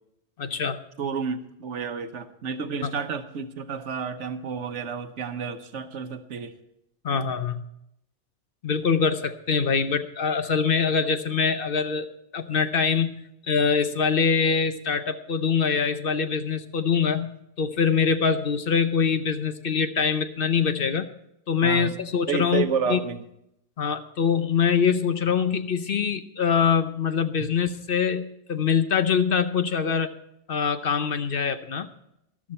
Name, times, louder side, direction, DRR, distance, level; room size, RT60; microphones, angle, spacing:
voice 1, 0.4-0.8 2.8-2.9 7.0-7.6 8.6-21.1 21.5-23.0 23.8-30.1 30.5-31.9, left 6 dB, 55° left, 10 dB, 0.9 m, -24 dB
voice 2, 1.0-6.5 21.6-22.0 22.3-23.2, right 6 dB, 80° right, 9 dB, 1.3 m, -30 dB
13.5 x 12.5 x 4.3 m, 0.79 s
omnidirectional pair, 1.2 m